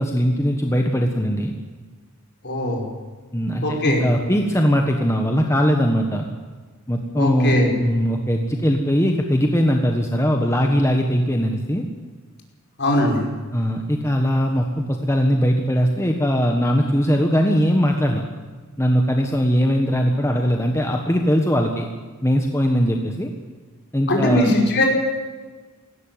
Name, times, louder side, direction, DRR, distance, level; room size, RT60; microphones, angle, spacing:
voice 1, 0.0-1.5 3.3-6.3 6.9-11.8 13.5-18.2 18.8-21.9 22.2-23.3 23.9-24.5, equal, 15° left, 2 dB, 1.4 m, -20 dB
voice 2, 2.4-2.8 3.6-4.1 7.2-7.7 12.8-13.2 24.1-24.9, left 1 dB, 50° left, 0 dB, 5.3 m, -20 dB
18.0 x 16.5 x 9.1 m, 1.4 s
head